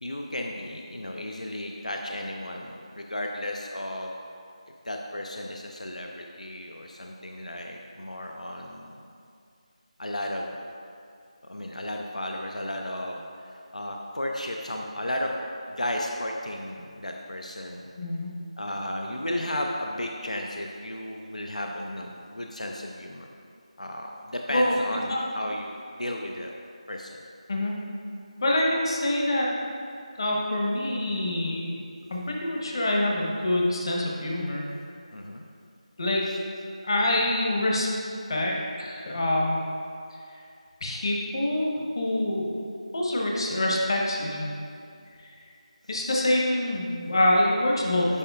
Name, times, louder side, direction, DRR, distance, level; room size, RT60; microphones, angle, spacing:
voice 1, 0.0-4.1 4.8-9.0 10.0-10.5 11.4-15.4 15.7-17.9 18.6-23.3 23.8-26.5 26.9-27.2 35.1-35.4 36.3-36.4 45.8-46.2, left 1 dB, 85° left, 1 dB, 0.6 m, -34 dB
voice 2, 18.0-18.3 24.5-24.8 25.1-25.2 27.5-27.7 28.4-29.5 30.2-31.7 32.1-34.7 36.0-36.3 36.8-37.9 38.3-38.5 38.8-39.6 40.8-42.6 42.9-44.5 45.9-48.2, left 1 dB, 45° left, -2 dB, 1.1 m, -25 dB
9.8 x 5.3 x 2.4 m, 2.4 s
figure-of-eight pair, 165°, 4 cm